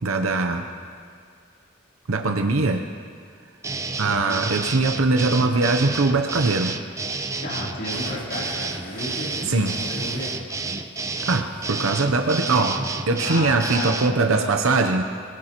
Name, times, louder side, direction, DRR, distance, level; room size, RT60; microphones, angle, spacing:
voice 1, 0.0-0.7 2.1-2.8 4.0-6.8 9.5-9.8 11.2-15.0, right 3 dB, 90° right, 4 dB, 0.8 m, -21 dB
sound 1, 3.6-14.1, right 3 dB, 15° right, 0.5 m, -30 dB
voice 2, 4.1-4.4 7.4-10.4 13.2-14.5, left 1 dB, 60° left, -4 dB, 3.4 m, -33 dB
sound 2, 7.9-12.9 13.3-13.4, left 2 dB, 75° left, 2.9 m, -43 dB
25.5 x 17.5 x 3.0 m, 2.3 s
head